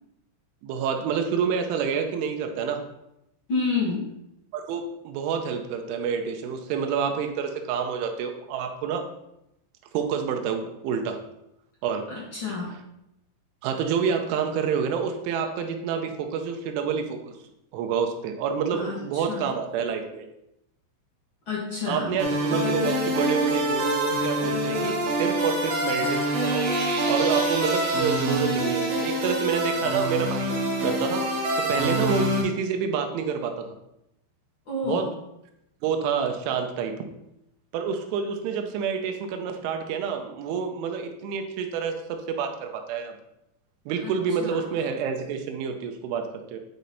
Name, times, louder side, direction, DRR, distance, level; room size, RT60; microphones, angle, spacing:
voice 1, 0.6-2.9 4.5-9.1 9.9-11.2 11.8-12.1 13.6-17.3 17.7-20.3 21.9-26.7 27.1-33.8 34.8-35.1 35.8-37.0 37.7-43.2 43.9-46.6, right 6 dB, 90° right, 4 dB, 3.2 m, -28 dB
voice 2, 3.5-4.0 12.1-12.8 18.7-19.5 21.4-22.2 34.6-35.1 44.0-44.1 44.4-44.8, left 4 dB, 90° left, -7 dB, 1.1 m, -30 dB
sound 1, 22.2-32.4, right 1 dB, 65° right, 3.6 m, -25 dB
10.0 x 4.2 x 4.0 m, 0.84 s
omnidirectional pair, 5.5 m